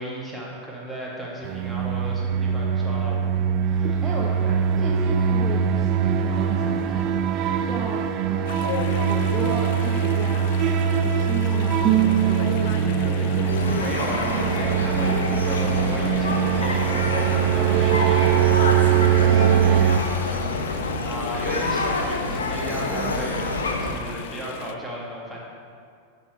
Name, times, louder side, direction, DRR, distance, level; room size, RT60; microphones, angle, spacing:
voice 1, 0.0-4.0 4.4-4.7 12.4-18.8 21.0-25.4, right 1 dB, ahead, -5 dB, 1.8 m, -35 dB
sound 1, 1.4-20.0, right 8 dB, 35° right, 0.4 m, -22 dB
voice 2, 4.0-4.3 4.8-7.1 7.7-8.7 9.1-10.5 11.0-11.8 17.6-18.2 19.1-20.1 22.8-23.4, right 3 dB, 20° right, -4 dB, 0.9 m, -33 dB
Chatter / Stream, 8.5-24.7, left 9 dB, 50° left, 0.3 m, -37 dB
sound 2, 13.5-23.9, left 2 dB, 70° left, 0.8 m, -27 dB
11.0 x 4.6 x 4.2 m, 2.2 s
figure-of-eight pair, 90°, 0 cm